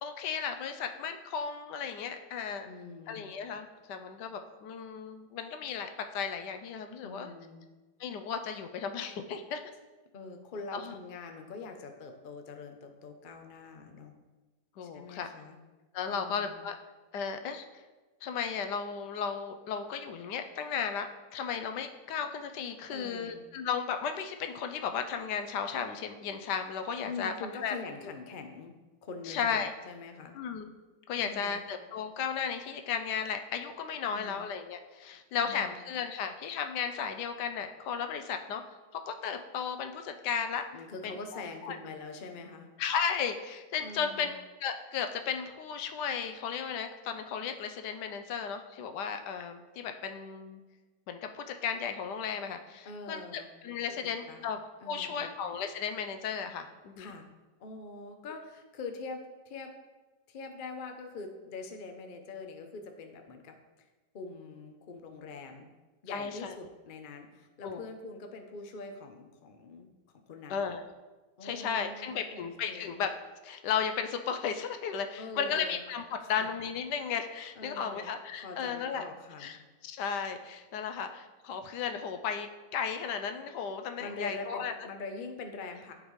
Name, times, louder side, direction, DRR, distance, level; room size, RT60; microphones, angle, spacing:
voice 1, 0.0-2.7 3.1-7.3 8.0-9.6 10.7-10.9 14.8-15.3 15.9-16.7 17.1-17.7 18.2-27.3 27.6-27.7 29.3-29.7 30.3-30.7 31.1-38.6 38.9-40.7 41.0-41.8 42.8-50.6 51.1-53.2 53.6-54.6 54.9-57.1 66.1-66.5 67.6-67.8 70.5-70.9 71.4-73.1 73.4-79.0 79.4-79.6 79.8-84.7, left 7 dB, 85° left, 7 dB, 1.2 m, -35 dB
voice 2, 2.6-3.3 7.0-7.7 10.1-14.1 14.8-15.6 16.1-16.6 22.9-23.4 27.0-28.7 29.0-30.3 31.1-31.6 34.1-34.4 35.4-35.8 40.7-42.7 43.8-44.3 52.8-54.0 54.3-54.5 54.8-55.3 57.0-57.3 57.6-59.7 60.3-63.5 64.1-65.7 66.0-69.9 70.2-70.7 71.4-73.0 75.2-75.8 76.2-76.5 77.5-78.1 78.4-79.5 84.0-85.9, left 3 dB, 60° left, 5 dB, 0.5 m, -44 dB
12.0 x 4.0 x 3.1 m, 1.2 s
omnidirectional pair, 1.8 m